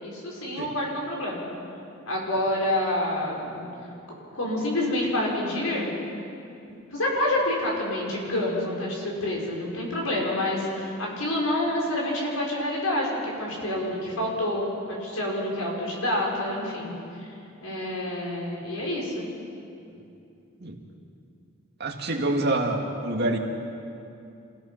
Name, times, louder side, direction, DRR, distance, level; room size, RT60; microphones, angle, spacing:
voice 1, 0.0-1.4 2.1-3.7 4.2-5.9 6.9-16.9 17.6-19.2, left 1 dB, 90° left, -3 dB, 5.5 m, -28 dB
voice 2, 21.8-23.4, right 2 dB, 50° right, 1 dB, 2.1 m, -27 dB
27.5 x 16.5 x 5.9 m, 2.6 s
head